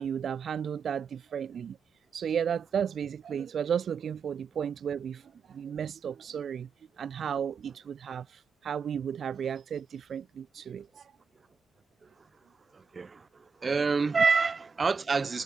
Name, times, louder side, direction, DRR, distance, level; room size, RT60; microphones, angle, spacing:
voice 1, 0.0-1.8 2.1-6.7 7.0-11.1, right 8 dB, 55° right, 0.5 m, -34 dB
voice 2, 12.7-15.4, right 4 dB, 35° right, 1.4 m, -27 dB
cardioid pair, 90°, 0 cm